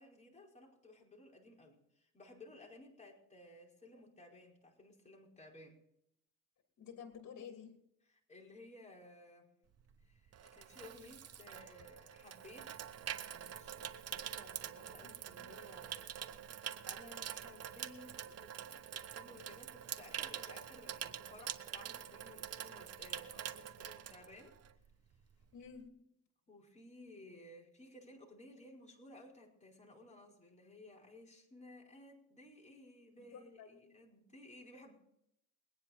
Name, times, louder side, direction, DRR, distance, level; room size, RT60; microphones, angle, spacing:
voice 1, 0.0-5.8 8.0-9.5 10.0-12.7 13.3-16.1 16.5-24.5 26.5-34.9, left 1 dB, 25° left, -1 dB, 4.8 m, -57 dB
voice 2, 6.8-7.8 15.0-15.6 25.5-26.1 33.2-33.8, left 7 dB, 60° left, 4 dB, 3.1 m, -52 dB
Water tap faucet / Sink (filling or washing), 9.8-24.9 25.1-25.4, right 9 dB, 55° right, 1.0 m, -46 dB
21.5 x 9.8 x 4.4 m, 0.76 s
cardioid pair, 90°, 30 cm